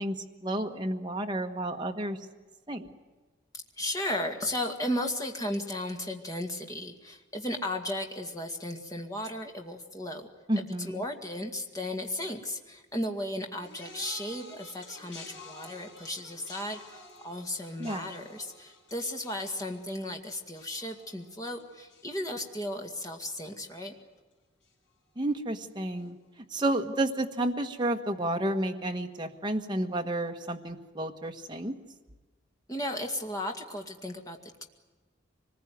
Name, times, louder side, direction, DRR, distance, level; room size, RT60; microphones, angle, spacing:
voice 1, 0.0-2.2 2.7-2.9 10.5-11.0 17.8-18.0 25.2-26.2 26.5-31.7, right 1 dB, 20° right, 3 dB, 1.4 m, -31 dB
voice 2, 3.8-10.3 10.6-23.9 32.7-34.6, left 1 dB, 15° left, 3 dB, 2.1 m, -35 dB
sound 1, 13.6-23.0 23.2-23.8 24.6-24.7, left 3 dB, 60° left, 6.2 m, -51 dB
25.0 x 20.0 x 9.4 m, 1.2 s
head